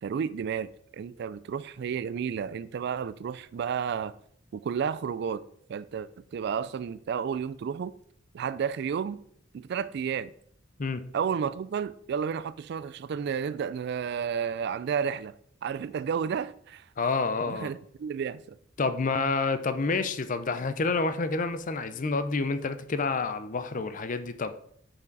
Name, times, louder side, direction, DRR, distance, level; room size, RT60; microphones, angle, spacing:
voice 1, 0.0-4.1 4.5-5.4 5.7-7.9 8.3-9.2 9.5-10.3 11.1-15.3 15.6-16.8 17.5-18.6, right 7 dB, 55° right, 0.3 m, -32 dB
voice 2, 17.0-17.7 18.8-24.5, left 4 dB, 40° left, 0.5 m, -28 dB
7.0 x 5.7 x 4.0 m
head